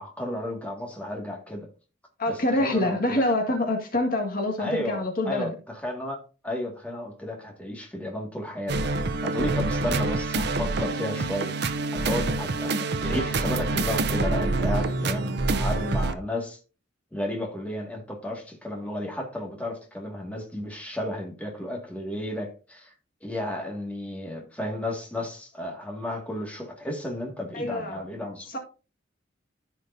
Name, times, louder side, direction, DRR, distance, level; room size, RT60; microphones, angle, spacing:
voice 1, 0.0-1.7 2.3-3.2 4.6-8.9 9.2-11.6 11.9-16.6 17.1-22.9 23.2-28.6, left 1 dB, 5° left, 2.0 m, -33 dB
voice 2, 2.2-5.5 27.5-28.0 28.5-28.6, left 1 dB, 50° left, 1.8 m, -26 dB
sound 1, 8.7-16.1, right 3 dB, 60° right, 0.7 m, -26 dB
14.0 x 5.1 x 2.7 m
head